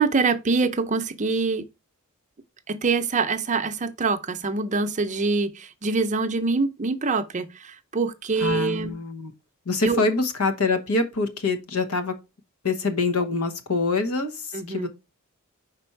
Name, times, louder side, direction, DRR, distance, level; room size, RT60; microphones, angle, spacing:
voice 1, 0.0-1.6 2.7-7.5 7.9-8.9 9.8-10.0 14.5-14.9, right 4 dB, 35° right, 0.6 m, -24 dB
voice 2, 8.4-9.3 9.7-12.2 12.6-14.9, left 3 dB, 80° left, 1.0 m, -25 dB
5.2 x 4.2 x 4.5 m
head